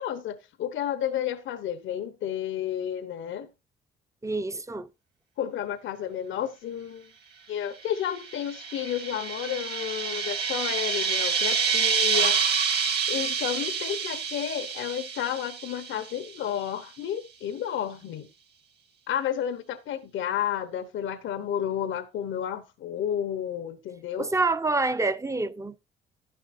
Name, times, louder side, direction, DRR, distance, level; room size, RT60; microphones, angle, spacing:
voice 1, 0.0-3.5 5.4-7.1 7.5-12.4 13.1-18.3 19.1-24.3, left 10 dB, 80° left, 1.1 m, -31 dB
voice 2, 4.2-4.9 24.2-25.8, right 3 dB, 15° right, 0.8 m, -27 dB
sound 1, 8.1-16.4, right 6 dB, 55° right, 3.0 m, -28 dB
11.0 x 10.5 x 2.6 m
cardioid pair, 90°, 20 cm